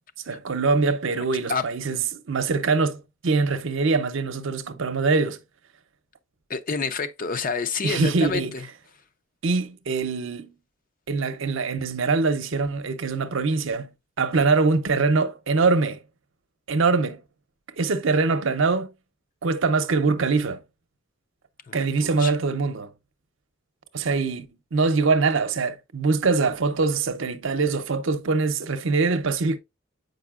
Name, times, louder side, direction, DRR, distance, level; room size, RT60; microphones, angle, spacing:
voice 1, 0.3-5.4 7.8-8.5 9.4-10.5 11.1-13.9 14.2-16.0 16.7-17.2 17.8-18.9 19.4-20.6 21.7-22.9 23.9-29.6, right 4 dB, 70° right, 0.7 m, -23 dB
voice 2, 6.5-8.6 14.3-14.4 21.7-22.3, left 4 dB, 45° left, 0.6 m, -29 dB
8.0 x 5.2 x 2.4 m
head